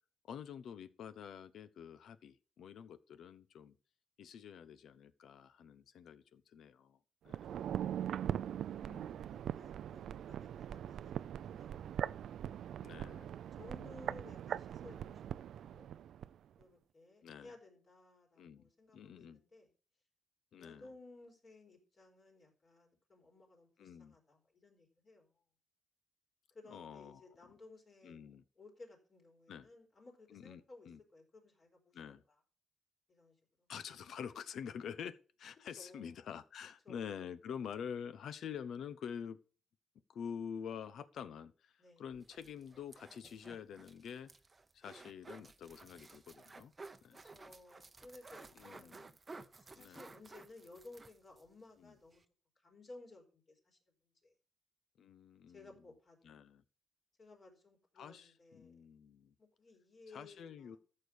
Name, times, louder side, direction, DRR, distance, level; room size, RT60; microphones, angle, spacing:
voice 1, 0.3-3.7 4.2-7.0 7.2-7.4 8.8-9.4 12.8-13.3 17.2-17.5 18.4-19.4 20.5-20.9 23.8-24.2 26.7-27.3 28.0-28.4 29.5-29.7 30.3-31.0 31.9-32.2 33.7-39.4 40.1-44.3 44.7-46.7 47.0-47.2 48.5-49.1 49.7-50.1 51.8-52.0 55.0-55.7 56.2-56.6 58.0-59.3 60.1-60.8, left 7 dB, 65° left, 0.9 m, -47 dB
sound 1, 7.3-16.3 16.6-16.7, right 10 dB, 70° right, 0.4 m, -41 dB
voice 2, 8.8-12.2 13.6-15.9 16.6-19.7 20.6-25.3 26.5-32.4 33.1-33.7 35.8-36.1 36.8-37.2 41.8-42.0 47.1-49.1 49.6-52.2 52.6-53.8 54.2-54.3 55.5-56.3 57.2-58.8 59.4-60.8, left 2 dB, 40° left, 4.3 m, -58 dB
sound 2, 42.1-51.5 51.8-51.9 52.1-52.2, right 3 dB, 20° right, 0.9 m, -55 dB
14.0 x 6.7 x 5.2 m
cardioid pair, 140°, 0 cm